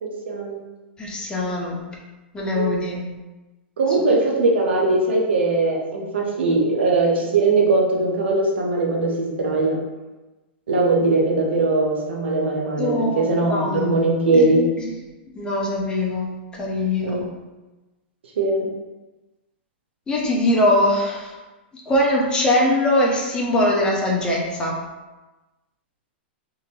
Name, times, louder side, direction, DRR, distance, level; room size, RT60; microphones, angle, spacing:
voice 1, 0.0-0.6 2.5-2.7 3.8-9.8 10.7-14.6 17.0-17.2 18.4-18.7, right 3 dB, 80° right, -1 dB, 0.9 m, -20 dB
voice 2, 1.0-1.8 2.3-3.0 12.8-13.9 14.3-14.5 15.3-17.2 20.1-21.3 21.9-24.7, left 1 dB, 15° left, -3 dB, 0.9 m, -22 dB
3.8 x 2.8 x 2.9 m, 1.1 s
hypercardioid pair, 115°, 6 cm